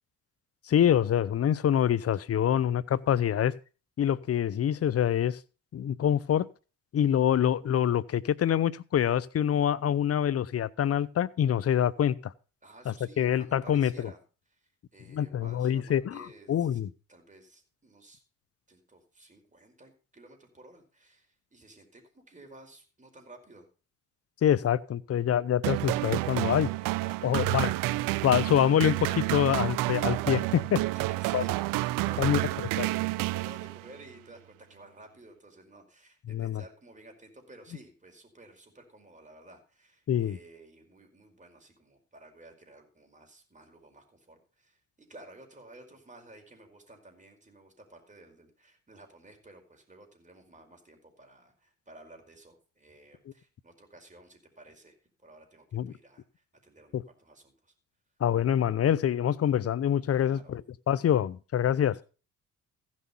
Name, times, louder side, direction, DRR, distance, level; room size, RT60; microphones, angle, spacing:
voice 1, 0.7-3.5 4.0-5.4 5.7-6.5 6.9-12.3 12.9-13.9 15.1-16.9 24.4-26.7 27.2-27.7 28.2-30.8 31.3-31.4 32.2-32.4 32.8-32.9 36.3-36.6 40.1-40.4 55.7-55.9 56.9-57.0 58.2-60.6 60.9-62.0, left 10 dB, 45° left, 0.8 m, -25 dB
voice 2, 12.6-14.2 14.5-16.8 17.1-18.2 18.7-23.7 26.8-28.0 31.1-54.9 55.2-57.7 60.2-60.6 61.7-62.0, right 2 dB, 25° right, 4.9 m, -53 dB
sound 1, 25.6-34.0, right 20 dB, 85° right, 0.5 m, -29 dB
15.5 x 6.4 x 5.4 m
supercardioid pair, 70°, 32 cm